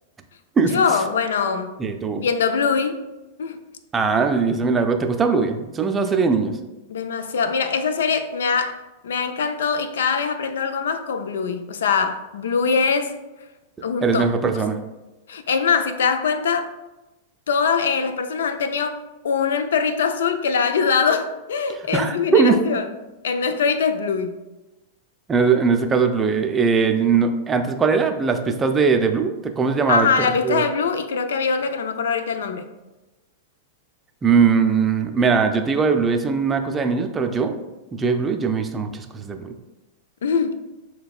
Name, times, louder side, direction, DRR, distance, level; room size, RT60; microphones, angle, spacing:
voice 1, 0.7-1.7 2.2-3.0 3.4-3.6 6.9-13.1 13.8-14.3 14.6-14.7 15.3-16.7 17.5-22.9 23.2-24.4 29.9-32.7 40.2-40.6, left 5 dB, 80° left, 9 dB, 0.3 m, -22 dB
voice 2, 1.8-2.2 3.9-6.5 14.0-14.8 21.9-22.6 25.3-30.1 30.4-30.6 34.2-37.5 37.9-39.5, right 5 dB, 20° right, 6 dB, 0.4 m, -20 dB
6.5 x 2.2 x 2.3 m, 1.1 s
hypercardioid pair, 115°, 0 cm